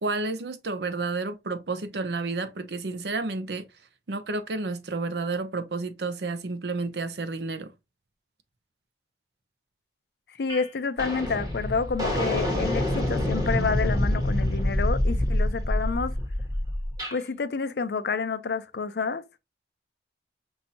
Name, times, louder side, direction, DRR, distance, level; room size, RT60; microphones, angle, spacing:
voice 1, 0.0-3.7 4.1-7.7, right 3 dB, 75° right, 0.7 m, -31 dB
voice 2, 10.4-16.1 17.1-19.2, left 5 dB, 65° left, 0.5 m, -29 dB
sound 1, 10.5-10.7 11.0-17.2, left 1 dB, 20° right, 1.3 m, -26 dB
5.6 x 2.6 x 2.8 m
head